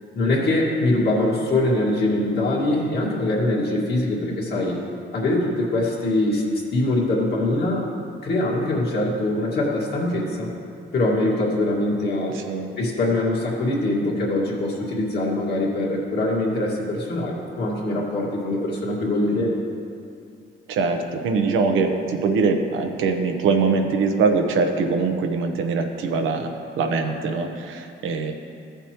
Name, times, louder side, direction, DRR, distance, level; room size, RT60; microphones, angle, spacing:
voice 1, 0.1-4.8 5.1-6.4 6.7-7.9 8.2-10.5 10.9-12.4 12.8-19.6, left 1 dB, 55° left, -3 dB, 2.1 m, -23 dB
voice 2, 12.3-12.7 19.3-19.4 20.7-26.5 26.8-28.3, right 4 dB, 85° right, 5 dB, 0.9 m, -22 dB
14.5 x 6.9 x 3.0 m, 2.4 s
cardioid pair, 90°, 20 cm